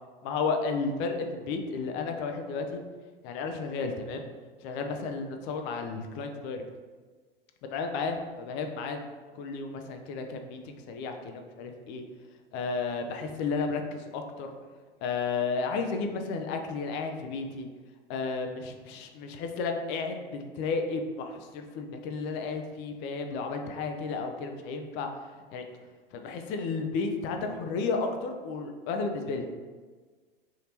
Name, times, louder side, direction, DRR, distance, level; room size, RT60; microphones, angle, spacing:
voice 1, 0.2-2.8 3.2-4.3 4.6-6.6 7.7-9.1 9.3-12.0 12.5-14.5 15.0-17.7 18.1-25.1 25.5-25.6 26.1-29.5, left 4 dB, 40° left, 5 dB, 0.5 m, -33 dB
3.5 x 2.8 x 2.8 m, 1.4 s
hypercardioid pair, 95°, 29 cm